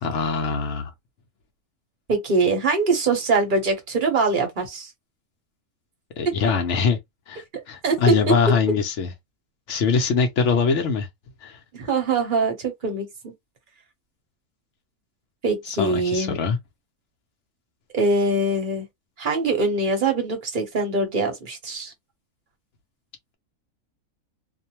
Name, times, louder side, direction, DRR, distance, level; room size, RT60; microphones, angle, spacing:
voice 1, 0.0-0.9 6.2-7.0 7.3-9.1 9.7-11.1 11.4-11.6 15.7-16.6, left 5 dB, 65° left, 0.9 m, -23 dB
voice 2, 2.1-4.9 7.8-8.1 11.7-13.1 15.4-16.4 17.9-18.8 19.2-21.9, right 3 dB, 45° right, 0.7 m, -23 dB
2.5 x 2.1 x 2.8 m
omnidirectional pair, 1.5 m